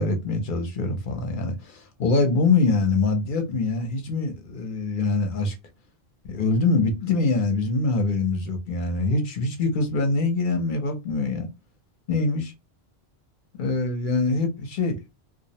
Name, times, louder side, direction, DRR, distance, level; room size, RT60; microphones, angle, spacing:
voice 1, 0.0-5.6 6.2-11.5 12.1-12.5 13.6-15.0, left 3 dB, 60° left, 0.7 m, -24 dB
2.3 x 2.0 x 2.7 m
omnidirectional pair, 1.1 m